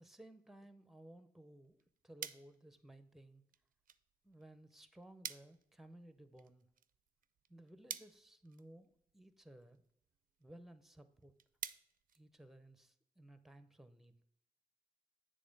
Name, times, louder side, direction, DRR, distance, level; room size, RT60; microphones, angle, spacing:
voice 1, 0.0-3.4 4.2-6.7 7.5-9.8 10.4-11.3 12.1-14.1, right 1 dB, ahead, 11 dB, 0.6 m, -58 dB
sound 1, 1.5-12.9, right 9 dB, 55° right, 0.4 m, -53 dB
7.7 x 3.3 x 5.2 m, 0.74 s
cardioid pair, 55°, 16 cm